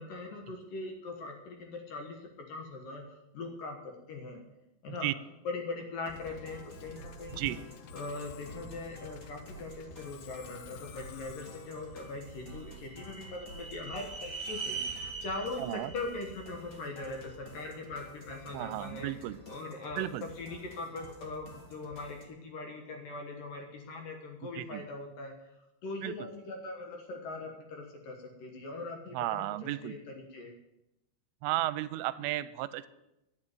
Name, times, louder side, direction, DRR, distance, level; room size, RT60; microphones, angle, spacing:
voice 1, 0.0-4.4 4.8-5.1 5.4-7.6 7.9-19.1 19.5-30.5, left 3 dB, 60° left, 2 dB, 2.5 m, -41 dB
Musical instrument, 6.1-13.4, left 8 dB, 80° left, 2.5 m, -51 dB
sound 1, 6.4-22.2, equal, 35° left, 1.4 m, -51 dB
sound 2, 12.2-17.4, right 4 dB, 60° right, 1.0 m, -42 dB
voice 2, 15.6-15.9 18.5-19.4 20.0-20.2 24.6-24.8 26.0-26.1 29.1-30.0 31.4-32.9, right 15 dB, 90° right, 15 dB, 3.1 m, -33 dB
12.0 x 8.6 x 9.0 m, 0.90 s
omnidirectional pair, 5.5 m